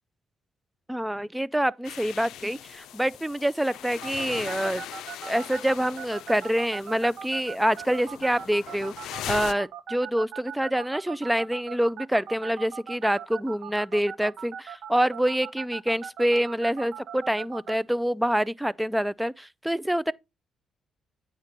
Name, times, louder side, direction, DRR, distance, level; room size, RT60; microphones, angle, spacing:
voice 1, 0.9-4.8 5.2-20.1, equal, 5° right, 0.4 m, -26 dB
sound 1, 1.8-9.5, left 12 dB, 85° left, 0.4 m, -40 dB
sound 2, 4.0-17.7, right 8 dB, 70° right, 1.1 m, -39 dB
8.8 x 5.3 x 4.0 m
cardioid pair, 90°, 0 cm